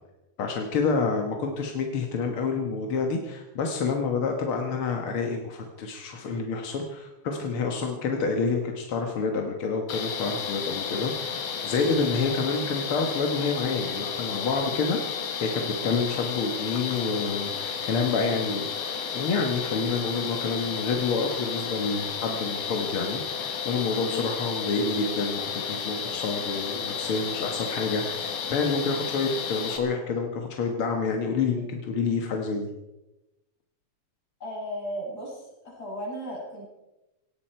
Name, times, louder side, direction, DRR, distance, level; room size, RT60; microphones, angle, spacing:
voice 1, 0.4-15.1 15.4-18.6 19.1-23.2 23.6-32.7, left 4 dB, 55° left, 3 dB, 1.6 m, -28 dB
sound 1, 9.9-29.8, left 6 dB, 85° left, 3.7 m, -32 dB
voice 2, 34.4-36.6, equal, 25° left, -4 dB, 7.2 m, -36 dB
18.0 x 16.5 x 4.5 m, 0.99 s
omnidirectional pair, 4.3 m